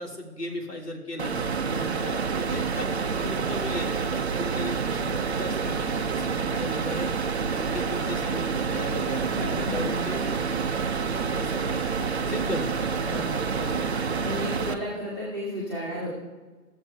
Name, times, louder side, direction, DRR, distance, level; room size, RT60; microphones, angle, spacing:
voice 1, 0.0-9.4 9.7-10.6 11.3-11.9 12.3-12.8, left 1 dB, 80° left, 1 dB, 2.1 m, -36 dB
sound 1, 1.2-14.7, right 5 dB, 45° right, 0.4 m, -28 dB
voice 2, 9.2-9.9 13.0-13.9 14.2-16.1, equal, 10° left, -8 dB, 1.2 m, -33 dB
14.5 x 7.3 x 2.3 m, 1.3 s
figure-of-eight pair, 150°, 47 cm